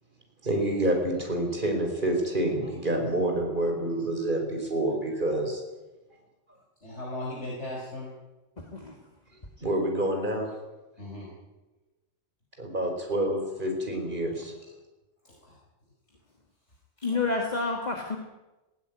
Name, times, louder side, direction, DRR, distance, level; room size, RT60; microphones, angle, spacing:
voice 1, 0.4-5.6 9.6-10.5 12.6-14.5, right 1 dB, 45° right, 2 dB, 4.9 m, -28 dB
voice 2, 6.8-8.1 11.0-11.3 15.2-15.6 17.0-17.2, left 1 dB, 70° left, -3 dB, 5.2 m, -38 dB
voice 3, 17.0-18.2, left 3 dB, 35° left, 1 dB, 2.4 m, -28 dB
19.5 x 17.0 x 9.3 m, 1.1 s
omnidirectional pair, 1.2 m